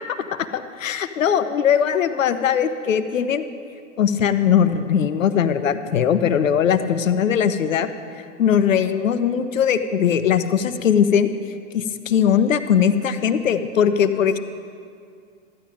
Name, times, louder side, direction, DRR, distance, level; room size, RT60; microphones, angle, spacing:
voice 1, 0.3-3.4 4.0-7.9 8.4-11.3 11.7-14.4, left 8 dB, 90° left, 11 dB, 0.8 m, -20 dB
14.0 x 10.0 x 5.2 m, 2.3 s
hypercardioid pair, 110°, 38 cm